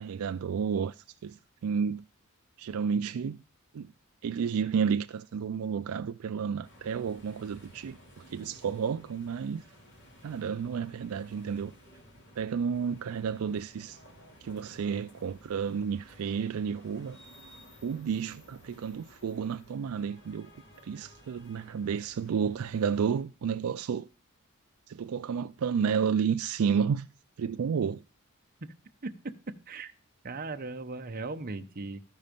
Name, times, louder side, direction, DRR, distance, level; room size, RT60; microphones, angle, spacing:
voice 1, 0.0-2.0 2.6-3.4 3.7-3.9 4.2-8.0 8.3-9.6 10.2-11.7 12.4-14.0 14.4-17.2 17.8-20.5 20.8-24.1 24.9-27.1 27.4-28.0, right 6 dB, 75° right, 0.4 m, -31 dB
sound 1, 6.6-23.2, equal, 55° left, 2.7 m, -55 dB
voice 2, 29.5-29.9 30.2-32.0, right 3 dB, 40° right, 0.8 m, -38 dB
13.5 x 5.5 x 5.1 m
head